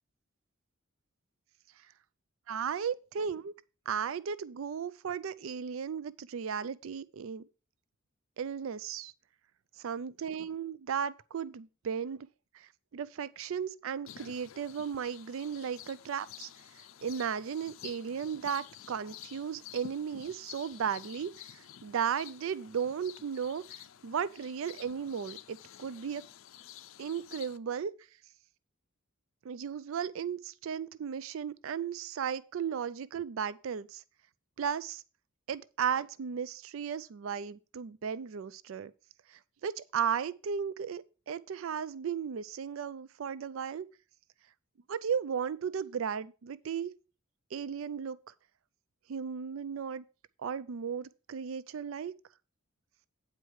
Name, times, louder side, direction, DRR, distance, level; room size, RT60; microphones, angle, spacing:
voice 1, 2.5-3.5 3.9-7.4 8.4-9.1 9.8-12.3 12.5-16.5 17.0-26.2 27.0-27.9 29.4-34.0 34.6-35.0 35.5-38.9 39.3-43.9 44.9-46.9 47.5-48.2 49.1-50.0 50.4-52.1, right 7 dB, 70° right, 0.4 m, -35 dB
sound 1, 14.1-27.6, left 10 dB, 70° left, 0.5 m, -51 dB
8.9 x 4.7 x 6.3 m
head